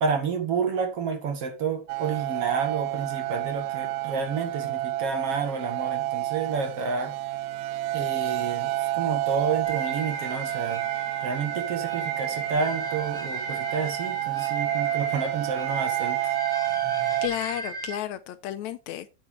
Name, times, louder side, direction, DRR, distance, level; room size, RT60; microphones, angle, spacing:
voice 1, 0.0-7.1 7.9-10.8 11.2-16.4, right 5 dB, 55° right, 2.6 m, -30 dB
sound 1, 1.9-17.3, right 16 dB, 80° right, 1.8 m, -29 dB
sound 2, 9.6-18.0, right 3 dB, ahead, 2.3 m, -35 dB
voice 2, 17.2-19.1, left 12 dB, 80° left, 1.9 m, -32 dB
8.8 x 7.7 x 3.4 m
omnidirectional pair, 3.5 m